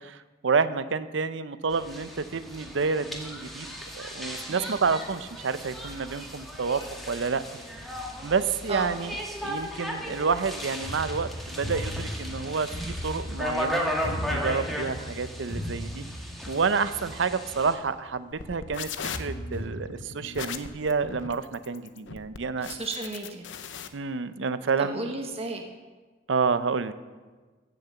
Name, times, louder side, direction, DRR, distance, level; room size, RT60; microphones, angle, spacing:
voice 1, 0.0-7.4 8.2-16.0 16.5-18.9 19.2-22.7 23.9-25.1 26.3-26.9, right 5 dB, 85° right, 13 dB, 0.6 m, -29 dB
sound 1, 1.7-17.7, equal, ahead, 1.9 m, -36 dB
sound 2, 10.8-17.8 18.2-18.3 18.9-19.6, equal, 70° left, 4.8 m, -37 dB
sound 3, 18.3-23.9, left 6 dB, 85° left, 0.8 m, -38 dB
voice 2, 22.7-23.5 24.8-25.6, right 3 dB, 35° right, 3 dB, 1.2 m, -33 dB
16.0 x 6.7 x 7.0 m, 1.3 s
head